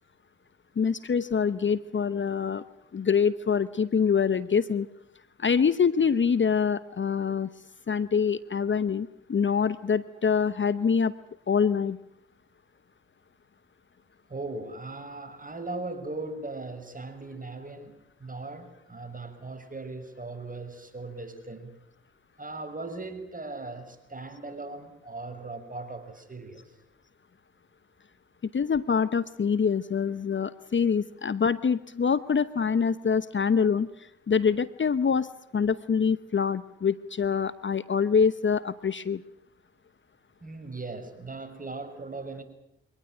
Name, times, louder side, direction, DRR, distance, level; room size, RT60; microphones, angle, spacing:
voice 1, 0.8-2.6 2.9-4.9 5.4-7.5 7.9-11.1 11.5-12.0 28.5-35.3 35.5-39.2, left 6 dB, 40° left, 16 dB, 1.0 m, -25 dB
voice 2, 14.3-21.8 22.4-26.8 40.4-42.4, right 3 dB, 25° right, 8 dB, 6.2 m, -39 dB
24.0 x 19.0 x 9.2 m, 0.82 s
hypercardioid pair, 45°, 30 cm